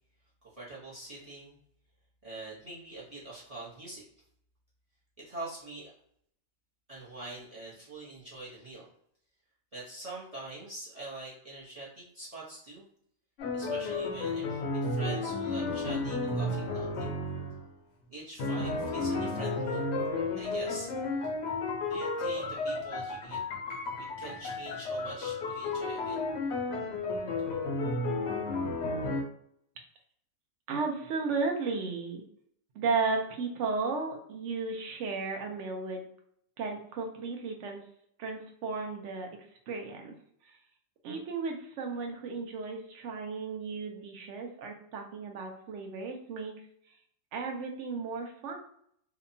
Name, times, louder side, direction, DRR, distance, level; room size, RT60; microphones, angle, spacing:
voice 1, 0.5-1.6 2.2-4.0 5.2-5.9 6.9-8.8 9.7-12.9 13.5-17.1 18.1-19.8 20.4-20.9 21.9-23.4 24.0-26.3, right 2 dB, 35° right, -8 dB, 0.6 m, -44 dB
sound 1, 13.4-17.7 18.4-29.2, left 2 dB, 65° left, 0.7 m, -32 dB
voice 2, 30.7-32.2 32.7-36.1 36.6-37.8 38.2-39.3 39.7-40.1 41.0-46.5 47.3-48.6, right 4 dB, 65° right, 2 dB, 0.8 m, -34 dB
2.8 x 2.2 x 2.6 m, 0.68 s
omnidirectional pair, 1.5 m